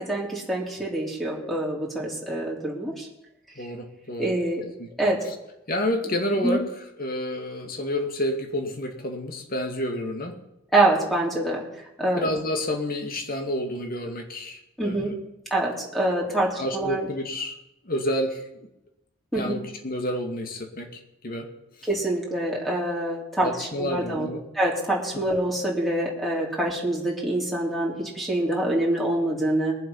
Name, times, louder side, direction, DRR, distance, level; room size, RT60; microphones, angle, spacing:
voice 1, 0.0-3.1 3.6-3.7 4.2-4.6 5.0-5.2 6.4-6.6 10.7-11.7 12.0-12.3 14.8-15.1 15.5-17.1 19.3-19.6 21.9-24.3 24.5-29.7, right 1 dB, ahead, -3 dB, 3.4 m, -25 dB
voice 2, 3.6-4.4 4.8-4.9 5.7-10.4 12.2-15.1 16.6-17.6 17.8-18.7 19.3-21.5 21.8-21.9 23.4-24.4, equal, 50° left, 4 dB, 2.4 m, -29 dB
22.0 x 7.5 x 5.6 m, 0.90 s
head